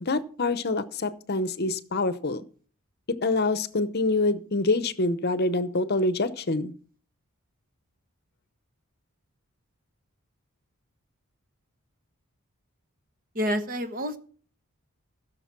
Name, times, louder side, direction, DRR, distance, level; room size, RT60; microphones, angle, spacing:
voice 1, 0.0-2.4 3.2-6.7, left 2 dB, 45° left, 14 dB, 0.8 m, -26 dB
voice 2, 13.3-14.2, equal, 40° right, 10 dB, 1.2 m, -28 dB
15.5 x 6.6 x 5.9 m, 0.43 s
head